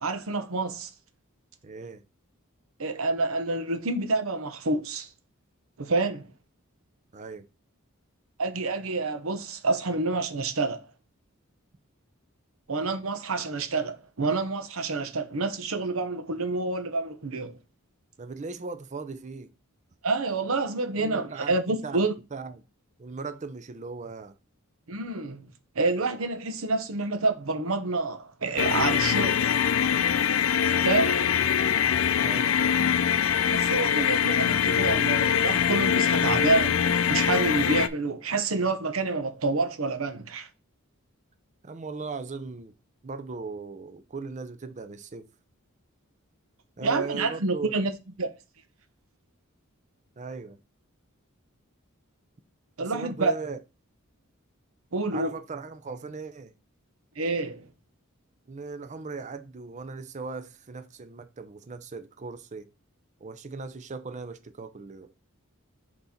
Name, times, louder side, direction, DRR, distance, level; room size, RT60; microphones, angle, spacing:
voice 1, 0.0-0.9 2.8-5.1 5.8-6.3 8.4-10.9 12.7-17.6 20.0-22.1 24.9-25.5 25.7-29.4 30.7-31.3 33.5-40.5 46.8-47.9 48.2-48.3 52.8-53.3 54.9-55.4 57.2-57.7, right 3 dB, 70° right, 0.9 m, -28 dB
voice 2, 1.6-2.0 7.1-7.5 18.2-19.5 21.0-22.6 23.0-24.4 32.2-32.5 41.6-42.7 43.0-45.3 46.8-47.7 50.2-50.6 52.8-53.6 55.1-56.5 58.5-62.7 63.2-65.1, right 4 dB, 35° right, 0.5 m, -38 dB
sound 1, 28.6-37.9, left 8 dB, 65° left, 0.5 m, -23 dB
6.0 x 4.0 x 4.2 m
head